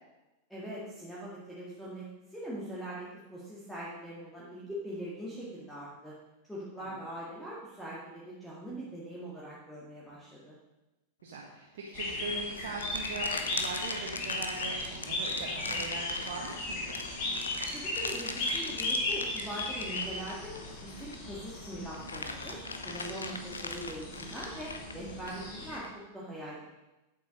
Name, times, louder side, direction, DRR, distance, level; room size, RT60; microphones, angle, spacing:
voice 1, 0.5-6.1 6.5-10.5 17.7-22.6 22.8-26.7, right 1 dB, 5° left, -7 dB, 2.1 m, -42 dB
voice 2, 11.2-17.0, right 3 dB, 55° right, -3 dB, 1.5 m, -41 dB
sound 1, 11.9-25.8, left 2 dB, 50° left, 2.6 m, -37 dB
sound 2, 12.1-21.3 21.7-25.9, left 3 dB, 75° left, 0.7 m, -41 dB
8.5 x 7.8 x 5.2 m, 1.0 s
figure-of-eight pair, 90°, 0 cm